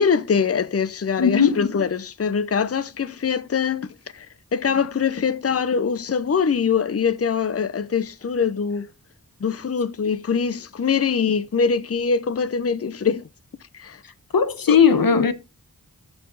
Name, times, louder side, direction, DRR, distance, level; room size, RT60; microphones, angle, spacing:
voice 1, 0.0-8.9 9.4-13.3 13.7-14.0 14.7-14.8 15.1-15.2, left 6 dB, 45° left, 0.6 m, -23 dB
voice 2, 1.2-1.6 14.3-15.3, left 6 dB, 90° left, 1.0 m, -17 dB
13.5 x 4.8 x 3.9 m
wide cardioid pair, 40°, 34 cm